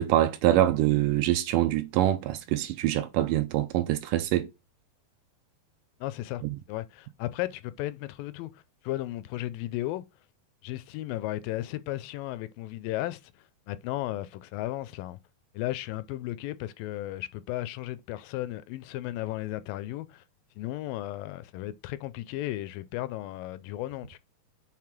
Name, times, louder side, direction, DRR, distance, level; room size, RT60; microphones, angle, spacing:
voice 1, 0.0-4.5 6.4-6.6, right 13 dB, 80° right, 2.0 m, -25 dB
voice 2, 6.0-6.4 6.7-10.0 10.6-13.3 13.7-15.2 15.5-20.2 20.6-24.2, left 15 dB, 80° left, 2.2 m, -35 dB
6.6 x 3.8 x 5.9 m
omnidirectional pair, 4.2 m